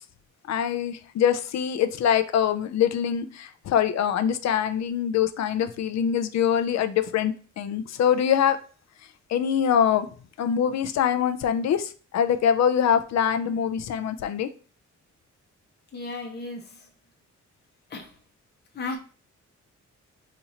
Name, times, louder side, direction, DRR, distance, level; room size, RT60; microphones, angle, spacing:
voice 1, 0.5-8.6 9.3-10.1 10.4-14.5, left 8 dB, 65° left, 10 dB, 0.4 m, -24 dB
voice 2, 15.9-16.9 17.9-18.1 18.7-19.0, left 3 dB, 35° left, 1 dB, 0.7 m, -35 dB
2.9 x 2.5 x 4.1 m, 0.38 s
wide cardioid pair, 125°, 30 cm